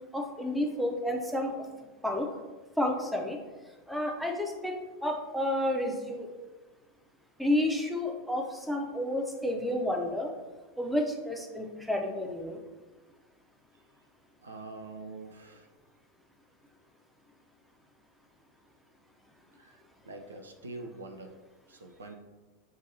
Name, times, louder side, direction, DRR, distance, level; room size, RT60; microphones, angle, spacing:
voice 1, 0.1-1.7 2.0-2.3 2.8-3.4 3.9-6.3 7.4-10.3 10.8-12.6, left 1 dB, ahead, 2 dB, 0.6 m, -30 dB
voice 2, 14.4-15.7 19.6-21.3 21.7-22.2, right 2 dB, 75° right, 5 dB, 0.4 m, -45 dB
6.9 x 2.6 x 2.7 m, 1.2 s
figure-of-eight pair, 85°, 0 cm